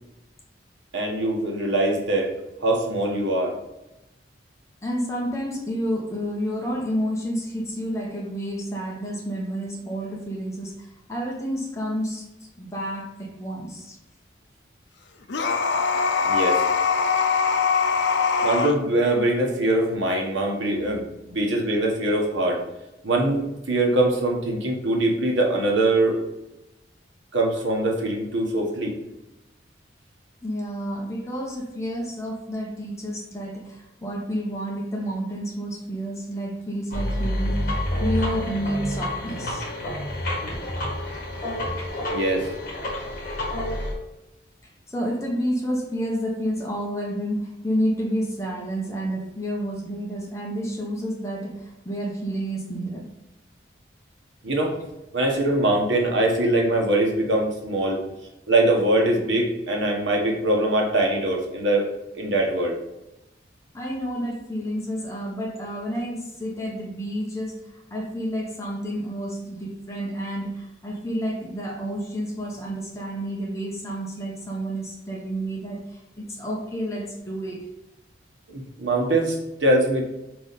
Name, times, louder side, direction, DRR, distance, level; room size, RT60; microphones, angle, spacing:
voice 1, 0.9-2.3 2.6-3.5 15.9-16.0 16.3-16.6 18.4-22.6 23.0-26.2 27.3-28.9 42.1-42.5 54.4-54.8 55.1-58.0 58.5-62.7 78.5-80.0, right 1 dB, 85° right, 0 dB, 1.4 m, -22 dB
voice 2, 4.8-12.3 12.6-14.0 30.4-39.7 44.9-53.0 63.7-77.6, equal, 15° left, -1 dB, 1.2 m, -30 dB
sound 1, 15.3-18.8, left 5 dB, 80° left, 0.6 m, -22 dB
sound 2, 36.9-43.9, left 1 dB, 50° left, 2.0 m, -28 dB
5.0 x 4.8 x 4.1 m, 0.93 s
head